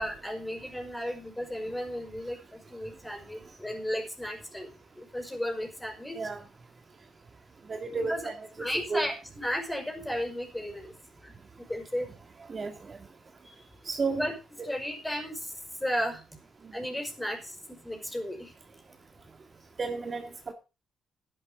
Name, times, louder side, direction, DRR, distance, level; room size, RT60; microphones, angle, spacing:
voice 1, 0.0-4.7 5.0-6.2 7.9-8.3 8.6-10.9 11.2-11.3 11.7-12.1 13.4-13.6 14.1-14.3 14.6-15.5 15.8-16.2 16.7-18.5, equal, 10° left, 5.4 m, -34 dB
voice 2, 7.7-9.1 12.5-13.0 13.9-14.3 14.6-14.7 19.8-20.5, right 4 dB, 35° right, 1.8 m, -33 dB
11.5 x 11.0 x 5.1 m
cardioid pair, 90°, 0 cm